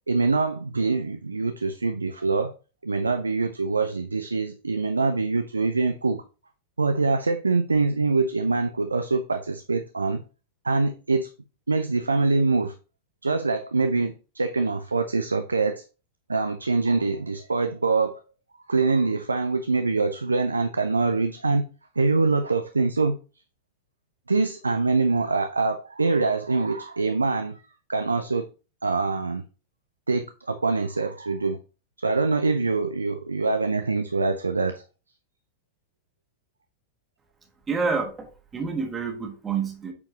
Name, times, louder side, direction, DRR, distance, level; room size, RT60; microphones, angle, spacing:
voice 1, 0.1-2.5 2.8-6.2 6.8-10.2 10.6-11.3 11.7-12.7 13.2-15.8 16.3-18.2 18.7-21.7 22.0-23.2 24.3-27.6 27.9-28.5 28.8-29.4 30.1-31.6 32.0-34.8, right 3 dB, 80° right, 0.4 m, -24 dB
voice 2, 37.7-39.9, right 5 dB, 15° right, 1.5 m, -28 dB
8.4 x 4.5 x 2.8 m
figure-of-eight pair, 90°, 0 cm